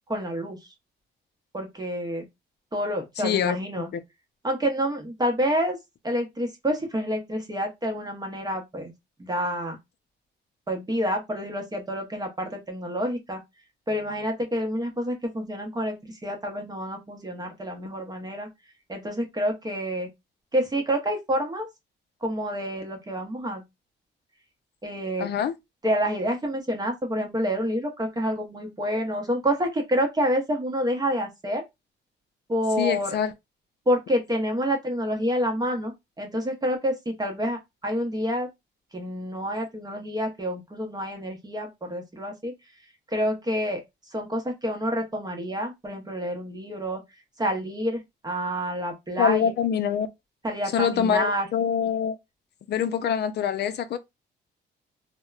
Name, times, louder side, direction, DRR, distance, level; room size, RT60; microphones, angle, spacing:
voice 1, 0.1-0.6 1.5-2.2 2.7-3.9 4.4-5.8 6.0-8.9 9.2-9.8 10.7-13.4 13.9-18.5 18.9-20.1 20.5-21.7 22.2-23.6 24.8-25.3 25.8-31.6 32.5-33.2 33.9-38.5 38.9-42.5 43.1-43.8 44.1-47.0 47.4-49.5 50.4-51.5, equal, 20° right, 0.8 m, -28 dB
voice 2, 3.2-3.6 3.9-4.0 25.2-25.5 32.8-33.3 49.2-50.1 50.7-52.2 52.7-54.0, left 8 dB, 55° left, 0.4 m, -25 dB
2.8 x 2.1 x 2.3 m
cardioid pair, 90°, 20 cm